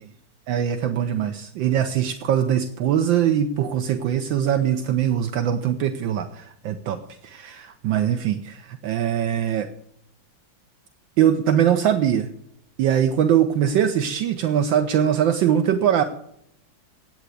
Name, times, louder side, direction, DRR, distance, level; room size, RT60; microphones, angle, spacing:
voice 1, 0.5-9.7 11.2-12.3 12.8-16.0, right 9 dB, 75° right, 7 dB, 1.5 m, -22 dB
9.2 x 8.7 x 8.3 m, 0.73 s
omnidirectional pair, 2.2 m